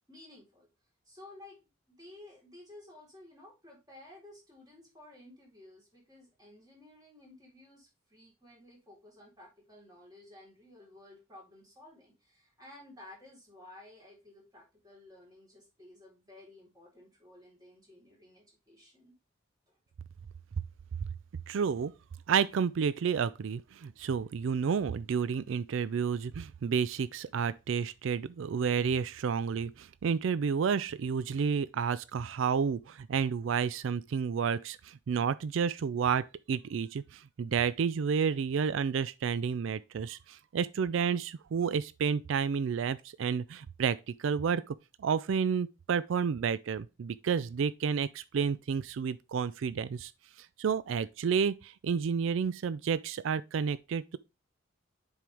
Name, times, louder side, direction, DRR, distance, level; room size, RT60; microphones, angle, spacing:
voice 1, 0.1-0.7 1.1-1.6 1.9-19.1 19.7-19.8, left 1 dB, 20° right, 3.8 m, -54 dB
voice 2, 21.5-21.9 22.3-50.1 50.4-54.2, right 6 dB, 70° right, 0.4 m, -30 dB
7.5 x 5.5 x 3.4 m
head